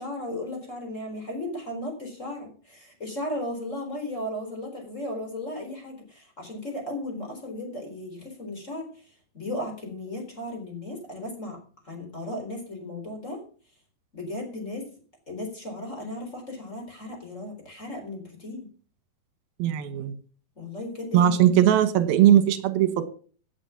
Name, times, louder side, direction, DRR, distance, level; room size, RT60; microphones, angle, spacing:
voice 1, 0.0-8.9 9.3-11.6 11.8-13.4 14.1-14.9 15.3-18.7 20.6-21.3, left 1 dB, 20° left, 2 dB, 4.2 m, -35 dB
voice 2, 19.6-20.2 21.1-23.0, right 10 dB, 85° right, 11 dB, 3.0 m, -19 dB
17.0 x 8.1 x 5.9 m, 0.42 s
omnidirectional pair, 4.1 m